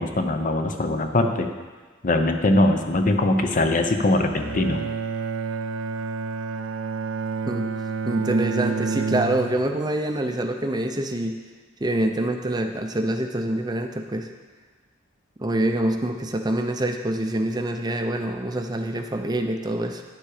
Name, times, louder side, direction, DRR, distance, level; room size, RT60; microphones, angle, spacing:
voice 1, 0.0-1.5 2.0-4.8, left 2 dB, 40° left, 5 dB, 0.7 m, -21 dB
Bowed string instrument, 4.3-9.8, right 4 dB, 75° right, 0.4 m, -29 dB
voice 2, 8.0-11.4 11.8-14.3 15.4-20.0, right 1 dB, 20° right, 5 dB, 0.5 m, -25 dB
9.9 x 7.3 x 4.9 m, 1.4 s
head